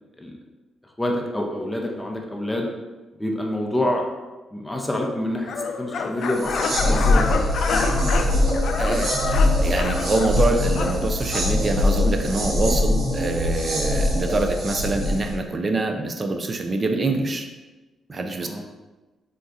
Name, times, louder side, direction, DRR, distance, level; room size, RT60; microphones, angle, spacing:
voice 1, 1.0-2.7 3.2-4.0 4.5-5.5 5.8-8.4 9.3-9.4 18.5-18.6, left 1 dB, 10° left, 0 dB, 0.6 m, -27 dB
sound 1, 5.5-11.5, left 5 dB, 65° left, 0.3 m, -28 dB
sound 2, 6.3-15.4, left 1 dB, 65° right, 1.0 m, -22 dB
voice 2, 8.8-9.3 9.6-17.5 18.1-18.5, right 2 dB, 40° right, 5 dB, 0.5 m, -25 dB
4.4 x 2.3 x 4.0 m, 1.2 s
cardioid pair, 70°, 0 cm